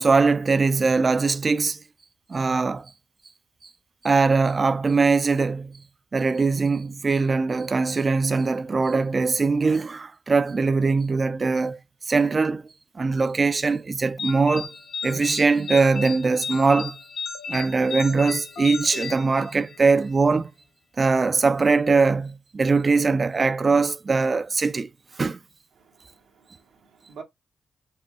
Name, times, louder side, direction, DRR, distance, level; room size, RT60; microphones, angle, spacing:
voice 1, 0.0-1.8 2.3-2.9 4.0-5.8 6.1-11.8 12.1-12.6 13.0-14.7 15.0-17.0 17.5-20.5 21.0-24.9 25.2-25.4, right 4 dB, 45° right, 0.4 m, -21 dB
sound 1, 14.2-20.0, left 6 dB, 90° left, 0.7 m, -34 dB
voice 2, 25.8-27.2, right 5 dB, 85° right, 1.1 m, -47 dB
5.4 x 2.0 x 4.1 m
cardioid pair, 60°, 0 cm